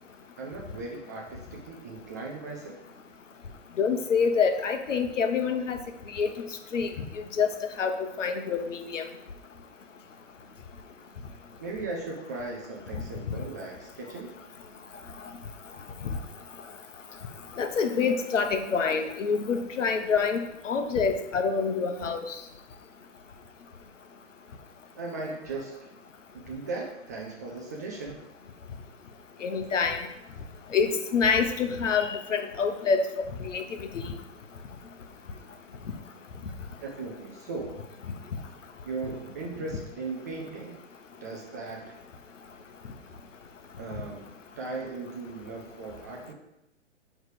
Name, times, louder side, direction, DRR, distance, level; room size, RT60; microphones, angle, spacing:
voice 1, 0.4-2.8 11.6-14.4 25.0-25.9 26.3-28.2 36.7-37.8 38.8-40.8 41.2-42.0 43.8-44.3 44.6-46.3, right 3 dB, 15° right, 0 dB, 0.3 m, -37 dB
voice 2, 3.8-5.8 6.1-6.3 6.7-6.9 7.4-7.5 7.8-9.0 13.3-13.4 16.0-16.2 17.6-22.4 29.4-30.0 30.7-33.6 33.9-34.0, left 5 dB, 75° left, 7 dB, 1.1 m, -26 dB
9.0 x 3.3 x 4.8 m, 0.88 s
hypercardioid pair, 130°, 37 cm